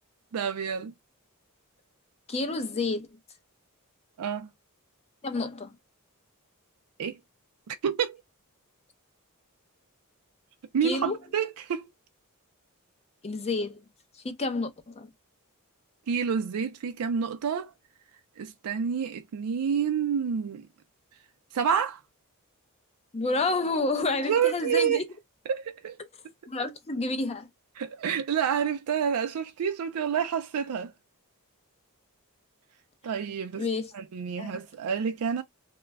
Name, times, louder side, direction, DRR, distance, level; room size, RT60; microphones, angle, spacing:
voice 1, 0.3-0.9 4.2-4.5 7.0-7.2 7.7-8.2 10.7-11.9 16.1-17.7 18.4-20.7 21.5-22.0 24.3-25.0 25.5-26.0 27.8-30.9 33.0-33.6 33.9-35.4, right 7 dB, 75° right, 0.4 m, -28 dB
voice 2, 2.3-3.1 5.2-5.7 10.8-11.2 13.2-13.8 14.2-15.1 23.1-25.1 26.5-27.5 33.6-33.9 34.4-34.5, left 3 dB, 30° left, 0.5 m, -29 dB
2.2 x 2.0 x 3.3 m
head